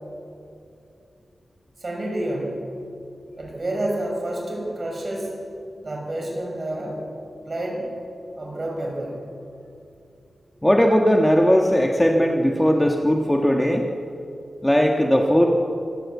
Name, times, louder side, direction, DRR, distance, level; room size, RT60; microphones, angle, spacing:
voice 1, 1.8-2.6 3.4-5.4 5.8-7.0 7.5-7.9 8.4-9.2, right 1 dB, 35° right, 0 dB, 6.2 m, -29 dB
voice 2, 10.6-13.9 14.6-15.5, equal, 5° left, 1 dB, 1.4 m, -18 dB
24.5 x 17.0 x 8.3 m, 2.6 s
wide cardioid pair, 150°, 0 cm